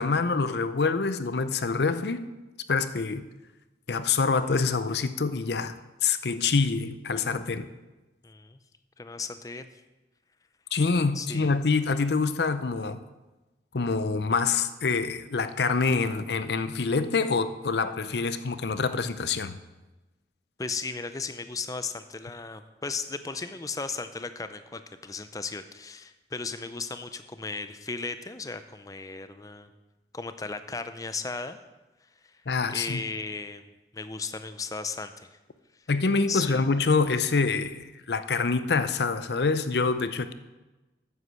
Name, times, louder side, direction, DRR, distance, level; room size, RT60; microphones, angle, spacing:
voice 1, 0.0-2.3 2.7-3.2 3.9-5.7 6.0-7.7 10.7-13.0 13.7-19.6 32.5-33.0 35.9-40.3, left 4 dB, 75° left, 12 dB, 0.6 m, -26 dB
voice 2, 8.2-8.6 9.0-9.7 11.1-11.5 20.6-29.7 30.1-31.6 32.7-33.7 33.9-35.3 36.3-36.6, left 4 dB, 20° left, 10 dB, 0.5 m, -36 dB
9.7 x 8.1 x 6.3 m, 1.1 s
head